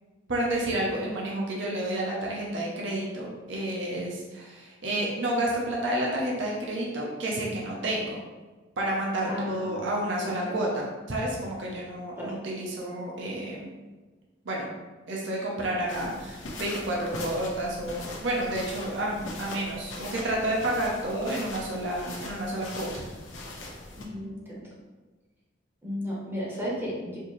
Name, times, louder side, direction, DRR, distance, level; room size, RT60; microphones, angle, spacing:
voice 1, 0.3-8.2 8.8-13.7 14.4-14.7 15.1-22.9, right 1 dB, 70° right, -3 dB, 0.7 m, -30 dB
voice 2, 9.2-9.8 10.2-10.6 12.2-12.3 24.0-24.7 25.8-27.2, equal, 10° right, -5 dB, 0.8 m, -34 dB
sound 1, 15.9-24.0, left 2 dB, 75° left, 0.7 m, -41 dB
4.4 x 2.7 x 3.0 m, 1.3 s
head